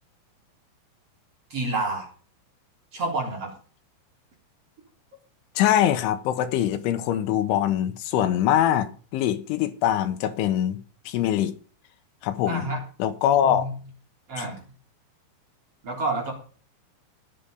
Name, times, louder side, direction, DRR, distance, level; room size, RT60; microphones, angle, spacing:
voice 1, 1.5-2.1 2.9-3.5 12.5-12.8 13.4-13.7 14.3-14.6 15.8-16.3, right 2 dB, 35° right, 4.2 m, -28 dB
voice 2, 5.6-10.8 11.1-11.6 12.2-12.7 13.0-13.7 14.4-14.5, left 11 dB, 90° left, 3.7 m, -23 dB
19.0 x 7.2 x 5.2 m
omnidirectional pair, 5.4 m